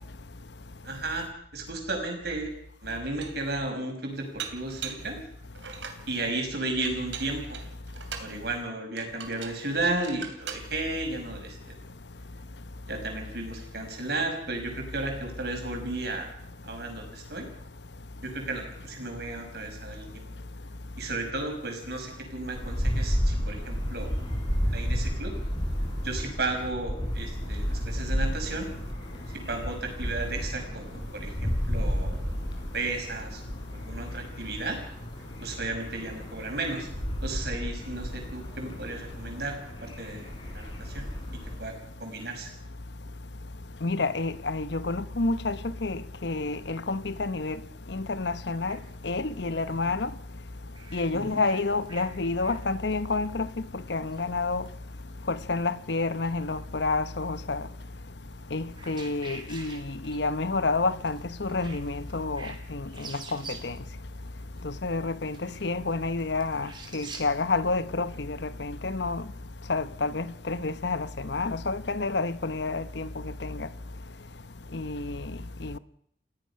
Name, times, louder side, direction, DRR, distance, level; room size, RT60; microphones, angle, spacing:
voice 1, 0.8-1.2 1.5-2.5 2.8-5.2 6.1-7.6 8.2-11.8 12.9-16.3 16.6-17.5 18.2-20.3 21.0-24.1 24.7-25.3 26.0-28.7 29.3-32.3 32.7-33.4 33.7-34.8 35.4-36.9 37.2-41.0 41.6-41.7 42.0-42.5 49.8-50.0 51.1-51.4, right 2 dB, 55° right, 5.8 m, -34 dB
Dishes pots and pans, 2.3-2.4 2.9-3.5 4.4-5.1 5.6-6.1 6.9-8.3 9.0-9.6 10.0-10.7, right 7 dB, 80° right, 3.0 m, -40 dB
sound 1, 22.5-41.6, equal, 25° left, 3.9 m, -32 dB
voice 2, 43.8-47.6 47.9-48.8 49.0-50.1 50.9-53.5 53.9-54.6 55.3-57.6 58.5-63.7 64.6-69.2 69.7-73.1 73.4-73.7 74.7-75.3 75.6-75.8, left 3 dB, 65° left, 0.9 m, -29 dB
sound 2, 48.7-48.9 49.6-49.9 50.7-52.1 52.4-52.6 52.9-53.1 53.5-54.4 54.6-55.1 55.4-55.8 56.2-56.9 57.2-57.8 58.4-60.4 60.7-60.8 61.1-61.2 61.5-62.6 62.9-63.8 64.2-67.3, right 4 dB, 25° right, 3.3 m, -46 dB
29.0 x 15.5 x 5.8 m
head